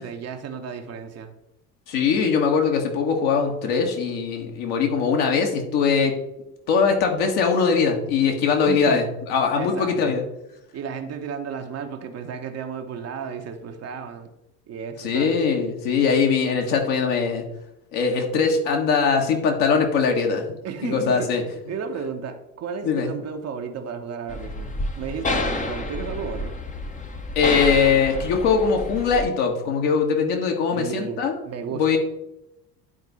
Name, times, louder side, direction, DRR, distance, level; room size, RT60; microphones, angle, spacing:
voice 1, 0.0-1.3 8.7-9.0 9.6-10.1 10.7-14.3 14.7-15.4 20.6-26.6 30.7-32.0, right 6 dB, 35° right, 5 dB, 1.0 m, -33 dB
voice 2, 1.9-6.1 6.7-10.2 15.0-17.4 17.9-20.6 20.8-21.4 22.8-23.1 27.3-31.4 31.7-32.0, left 5 dB, 55° left, 2 dB, 1.7 m, -21 dB
sound 1, 24.3-29.2, left 2 dB, 15° left, 0.9 m, -29 dB
10.5 x 4.5 x 4.1 m, 0.88 s
figure-of-eight pair, 65°, 46 cm